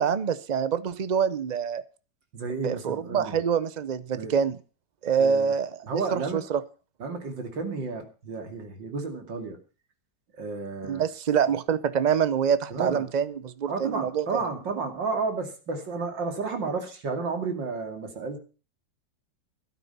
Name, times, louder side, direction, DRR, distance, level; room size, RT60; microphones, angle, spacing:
voice 1, 0.0-1.8 2.6-4.6 5.0-6.6 10.8-14.2, right 7 dB, 65° right, 15 dB, 0.4 m, -26 dB
voice 2, 2.3-3.4 4.1-4.4 5.2-5.5 5.8-6.4 7.0-9.6 10.4-11.0 12.7-13.1 13.6-18.4, right 4 dB, 85° right, 5 dB, 3.1 m, -32 dB
13.5 x 12.0 x 5.5 m, 0.35 s
omnidirectional pair, 1.9 m